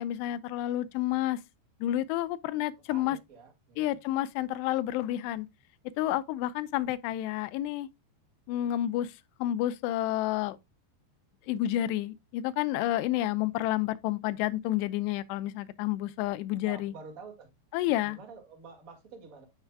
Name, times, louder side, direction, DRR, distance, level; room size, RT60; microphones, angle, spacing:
voice 1, 0.0-1.4 1.8-3.2 3.8-5.5 6.0-7.9 8.5-9.1 9.4-10.6 11.5-16.9 17.7-18.2, left 13 dB, 85° left, 2.6 m, -30 dB
voice 2, 2.9-4.0 16.6-17.5 18.0-19.4, right 5 dB, 55° right, 0.9 m, -48 dB
9.6 x 4.6 x 2.2 m
omnidirectional pair, 5.0 m